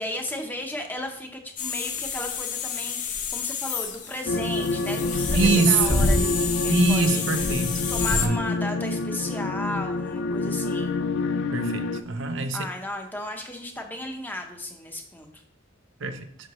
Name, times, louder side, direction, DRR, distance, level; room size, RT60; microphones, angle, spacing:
voice 1, 0.0-7.2 7.9-11.0 12.5-15.4, left 1 dB, 10° left, 3 dB, 0.8 m, -35 dB
sound 1, 1.6-8.3, left 4 dB, 40° left, 0.8 m, -28 dB
sound 2, 4.3-12.0, left 3 dB, 60° left, 0.4 m, -27 dB
voice 2, 5.3-6.0 6.7-7.8 8.2-8.4 11.5-12.6 16.0-16.3, right 4 dB, 65° right, 8 dB, 0.6 m, -24 dB
7.5 x 6.5 x 3.0 m, 0.65 s
head